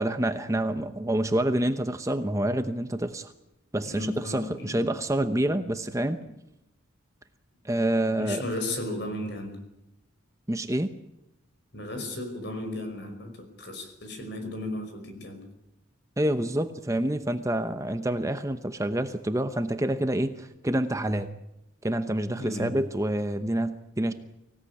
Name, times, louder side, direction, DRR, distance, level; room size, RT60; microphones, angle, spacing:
voice 1, 0.0-3.3 3.7-6.2 7.6-8.4 10.5-10.9 16.2-21.3 21.8-24.1, right 1 dB, 15° right, 9 dB, 0.9 m, -27 dB
voice 2, 3.8-4.9 8.2-9.6 11.7-15.5 18.1-18.2 22.4-22.9, left 1 dB, 55° left, 7 dB, 5.3 m, -35 dB
25.0 x 17.0 x 9.9 m, 0.89 s
head